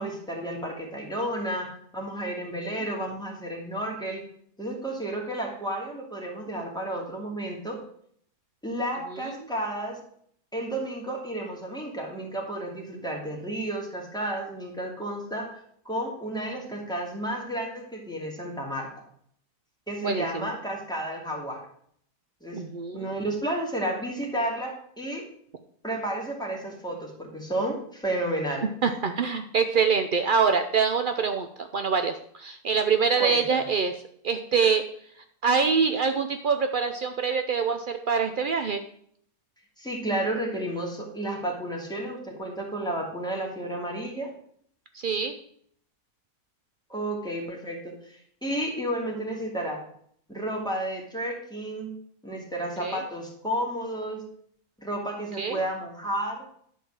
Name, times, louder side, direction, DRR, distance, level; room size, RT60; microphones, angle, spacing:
voice 1, 0.0-4.2 4.6-7.8 8.6-10.0 10.5-18.9 19.9-21.6 22.4-22.6 22.9-25.2 25.8-28.7 33.2-33.7 39.8-44.3 46.9-49.8 50.3-51.9 52.2-54.2 54.8-56.4, right 1 dB, 5° left, -2 dB, 2.4 m, -32 dB
voice 2, 20.0-20.5 22.5-23.1 28.8-34.0 34.2-34.8 35.4-38.8 45.0-45.3 52.8-53.0 55.4-55.6, right 5 dB, 65° right, 7 dB, 0.5 m, -25 dB
11.0 x 4.6 x 7.3 m, 0.65 s
omnidirectional pair, 1.7 m